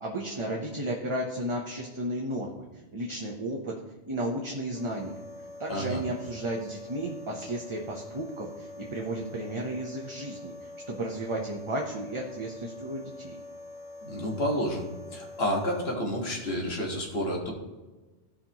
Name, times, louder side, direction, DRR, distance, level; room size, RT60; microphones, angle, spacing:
voice 1, 0.0-2.7 2.9-3.8 4.1-5.2 5.6-10.5 10.9-13.4, right 1 dB, 30° right, -1 dB, 0.9 m, -33 dB
sound 1, 4.7-15.9, left 2 dB, 10° right, 1.2 m, -45 dB
voice 2, 5.7-6.0 14.0-14.9 15.1-17.5, equal, 60° left, 0 dB, 1.9 m, -30 dB
16.0 x 5.6 x 3.0 m, 1.2 s
omnidirectional pair, 1.2 m